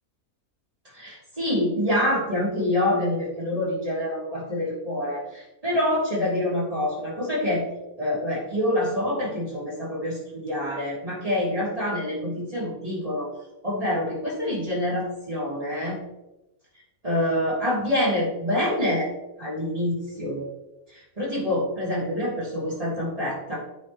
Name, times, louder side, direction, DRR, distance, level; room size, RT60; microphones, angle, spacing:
voice 1, 0.9-7.6 8.0-13.3 13.6-16.0 17.0-19.1 19.4-20.4 20.9-23.6, left 1 dB, 25° right, -6 dB, 3.3 m, -26 dB
10.0 x 7.7 x 3.1 m, 0.96 s
omnidirectional pair, 1.6 m